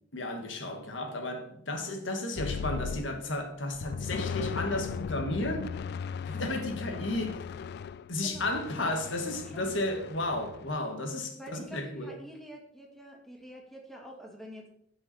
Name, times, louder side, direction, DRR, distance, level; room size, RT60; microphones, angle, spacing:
voice 1, 0.1-5.7 6.2-7.4 8.1-12.1, left 2 dB, 85° left, 1.7 m, -33 dB
sound 1, 2.4-3.4 3.7-10.8, left 6 dB, 60° left, 0.3 m, -37 dB
voice 2, 8.2-9.0 9.2-9.7 11.4-14.7, equal, ahead, 2.2 m, -47 dB
14.5 x 5.8 x 4.3 m
head